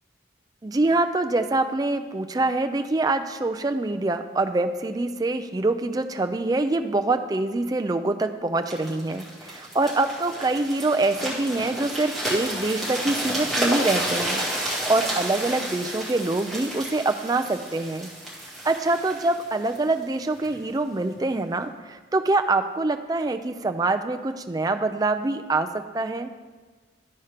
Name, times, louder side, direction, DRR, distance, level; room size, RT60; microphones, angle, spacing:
voice 1, 0.6-18.1 18.6-26.3, right 2 dB, 20° right, 7 dB, 0.4 m, -25 dB
sound 1, 8.7-20.5 21.1-21.3, right 1 dB, ahead, 1.8 m, -31 dB
11.5 x 4.3 x 5.1 m, 1.4 s
head